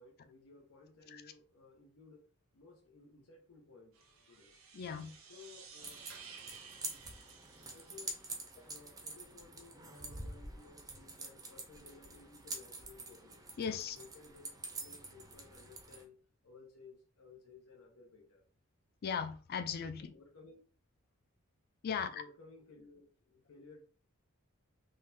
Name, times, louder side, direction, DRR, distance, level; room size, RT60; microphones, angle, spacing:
voice 1, 0.0-2.3 2.5-4.5 5.2-6.1 6.5-7.0 7.7-8.2 8.6-13.5 13.9-14.5 14.8-16.1 16.4-18.5 20.1-20.6 22.1-23.8, left 4 dB, 85° left, 0.7 m, -58 dB
sound 1, 3.9-8.7, right 6 dB, 70° right, 0.8 m, -55 dB
voice 2, 4.7-5.1 13.6-14.0 19.0-20.1 21.8-22.2, left 6 dB, 45° left, 0.3 m, -37 dB
sound 2, 5.8-16.0, right 2 dB, 15° right, 0.5 m, -47 dB
3.7 x 2.3 x 2.6 m
head